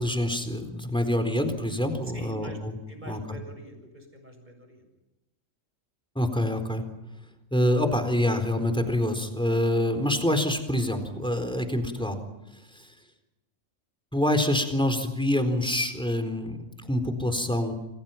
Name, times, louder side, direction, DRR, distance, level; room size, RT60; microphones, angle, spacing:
voice 1, 0.0-2.8 3.0-3.4 6.2-6.8 7.5-12.2 12.7-12.9 14.1-17.7, left 1 dB, 5° left, 7 dB, 4.0 m, -26 dB
voice 2, 2.1-2.6 2.9-4.8, right 1 dB, 35° right, 5 dB, 7.2 m, -45 dB
29.0 x 26.0 x 5.8 m, 0.98 s
omnidirectional pair, 1.4 m